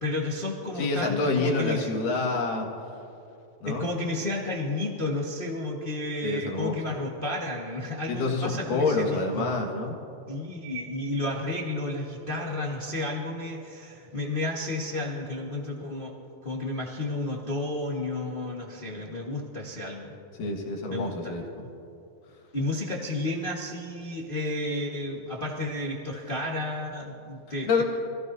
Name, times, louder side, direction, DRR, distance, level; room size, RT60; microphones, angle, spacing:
voice 1, 0.0-1.9 3.6-9.5 10.3-16.1 16.4-20.2 20.9-21.3 22.5-27.8, left 2 dB, 55° left, -3 dB, 0.5 m, -32 dB
voice 2, 0.8-2.7 3.6-3.9 6.2-6.8 8.1-10.0 20.4-21.4 27.7-27.8, left 3 dB, 85° left, 0 dB, 3.4 m, -27 dB
27.0 x 16.5 x 2.7 m, 2.8 s
omnidirectional pair, 3.7 m